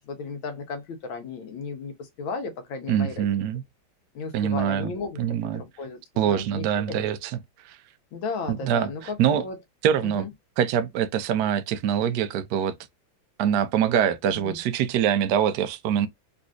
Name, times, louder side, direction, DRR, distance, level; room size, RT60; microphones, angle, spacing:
voice 1, 0.0-3.3 4.1-7.1 8.1-9.6 10.0-10.3 14.4-14.6, left 4 dB, 75° left, 1.7 m, -35 dB
voice 2, 2.9-3.6 4.3-4.9 5.2-5.6 6.2-7.4 7.6-7.8 8.5-9.5 9.8-10.3 10.6-12.7 13.4-16.1, right 9 dB, 70° right, 1.0 m, -24 dB
4.0 x 2.6 x 2.3 m
omnidirectional pair, 2.2 m